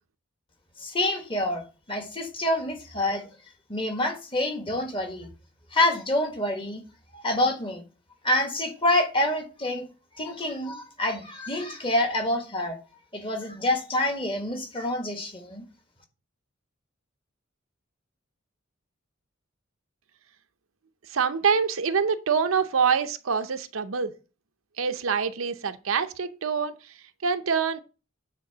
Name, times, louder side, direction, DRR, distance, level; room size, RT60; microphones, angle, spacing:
voice 1, 0.8-3.3 3.7-5.3 5.7-6.8 7.1-7.8 8.2-9.8 10.2-12.8 13.1-15.6, left 1 dB, 25° left, 1.5 m, -27 dB
voice 2, 21.1-24.1 24.8-26.7 27.2-27.8, right 6 dB, 80° right, 0.7 m, -25 dB
9.2 x 3.7 x 6.7 m
head